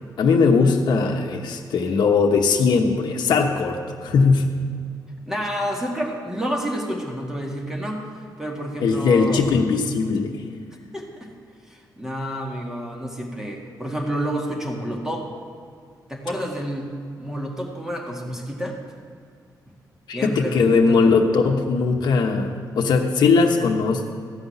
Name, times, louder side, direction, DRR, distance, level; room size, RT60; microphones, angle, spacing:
voice 1, 0.2-4.5 8.8-10.5 20.1-24.1, left 4 dB, 75° left, 1 dB, 1.1 m, -19 dB
voice 2, 5.3-9.5 10.9-11.3 11.7-15.3 16.1-16.9 17.2-18.8 20.1-21.1, equal, 5° right, 0 dB, 1.9 m, -29 dB
14.5 x 5.6 x 9.4 m, 2.2 s
cardioid pair, 130°, 7 cm